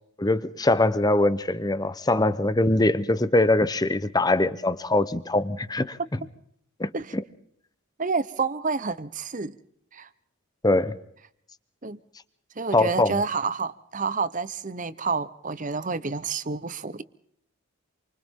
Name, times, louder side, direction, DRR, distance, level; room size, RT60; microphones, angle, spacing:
voice 1, 0.2-6.0 6.8-6.9 10.6-11.0 12.7-13.2, left 2 dB, 20° left, 0.8 m, -22 dB
voice 2, 8.0-9.6 9.9-10.1 11.8-12.0 12.6-17.0, right 4 dB, 35° right, 0.9 m, -29 dB
28.5 x 24.5 x 3.7 m
head